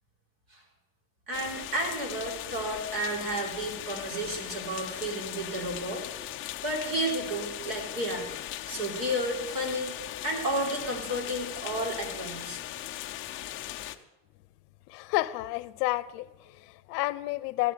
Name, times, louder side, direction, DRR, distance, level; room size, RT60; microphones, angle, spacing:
sound 1, 1.3-14.0, left 14 dB, 25° left, 0.6 m, -39 dB
voice 1, 1.3-6.0 6.6-8.3 8.7-9.9 10.2-12.6, right 1 dB, 45° right, 4.0 m, -32 dB
voice 2, 14.9-17.7, left 19 dB, 70° left, 0.8 m, -31 dB
15.5 x 7.2 x 9.3 m
cardioid pair, 170°, 49 cm